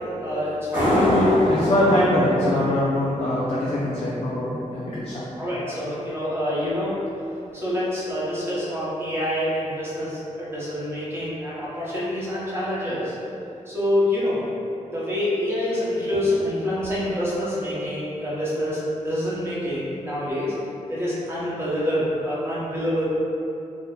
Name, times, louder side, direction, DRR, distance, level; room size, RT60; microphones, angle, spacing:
voice 1, 0.0-1.2 5.4-7.0 7.5-13.1 13.7-14.5 14.9-20.5 20.9-23.0, left 1 dB, 20° right, -9 dB, 0.8 m, -26 dB
sound 1, 0.7-4.0, left 1 dB, 85° right, 1.5 m, -25 dB
voice 2, 0.8-5.2, left 1 dB, 50° left, -7 dB, 0.4 m, -22 dB
3.5 x 2.1 x 2.2 m, 2.7 s
wide cardioid pair, 130°, 13 cm